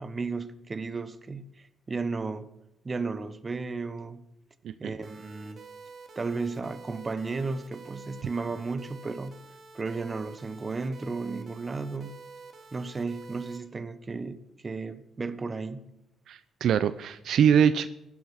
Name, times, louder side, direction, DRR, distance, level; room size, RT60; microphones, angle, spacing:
voice 1, 0.0-1.4 1.9-2.5 2.8-4.3 4.8-5.6 6.1-9.3 9.7-12.1 12.7-15.8, right 4 dB, 30° right, 1.4 m, -34 dB
sound 1, 5.0-13.6, right 4 dB, 50° right, 2.8 m, -48 dB
voice 2, 16.3-17.9, right 8 dB, 70° right, 0.7 m, -23 dB
15.5 x 11.5 x 6.6 m
cardioid pair, 90°, 0 cm